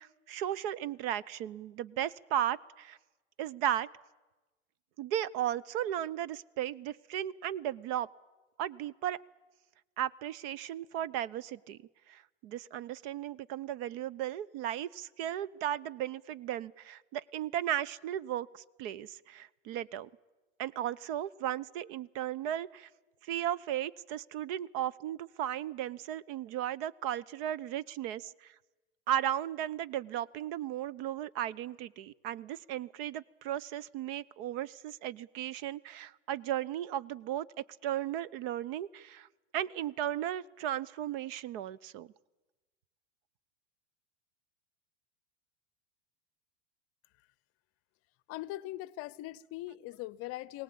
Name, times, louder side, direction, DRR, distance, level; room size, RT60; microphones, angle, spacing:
voice 1, 0.0-3.0 3.4-3.9 5.0-8.1 8.6-9.2 10.0-11.8 12.1-20.1 20.6-22.9 23.2-28.5 29.1-37.5 37.8-39.3 39.5-42.1, right 11 dB, 50° right, 0.8 m, -35 dB
voice 2, 48.3-50.6, left 17 dB, 40° left, 0.7 m, -41 dB
22.5 x 18.5 x 8.6 m
hypercardioid pair, 100°, 36 cm